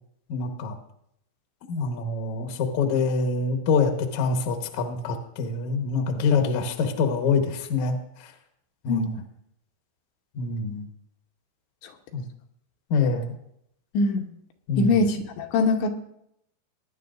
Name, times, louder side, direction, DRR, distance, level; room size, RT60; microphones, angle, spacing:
voice 1, 0.3-0.8 1.7-8.3 8.8-9.2 10.3-10.9 12.1-12.2 12.9-13.3 14.7-15.0, left 4 dB, 65° left, 4 dB, 2.0 m, -25 dB
voice 2, 13.9-14.3 14.8-15.9, left 3 dB, 80° left, 3 dB, 3.2 m, -23 dB
21.0 x 10.5 x 2.6 m, 0.75 s
omnidirectional pair, 5.2 m